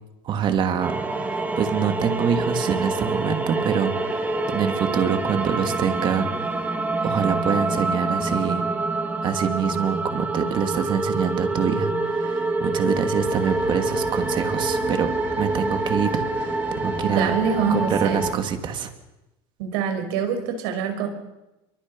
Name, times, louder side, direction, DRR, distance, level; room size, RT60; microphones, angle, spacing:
voice 1, 0.2-6.6 7.0-8.6 9.2-15.1 15.4-17.3 17.7-18.9, right 7 dB, 35° right, 7 dB, 2.6 m, -25 dB
sound 1, 0.8-18.3, right 2 dB, 10° right, 2.5 m, -26 dB
sound 2, 13.2-18.3, left 4 dB, 25° left, 5.4 m, -40 dB
voice 2, 17.0-18.2 19.6-21.1, right 6 dB, 75° right, 6 dB, 5.2 m, -25 dB
27.5 x 23.5 x 5.6 m, 0.97 s
cardioid pair, 145°, 13 cm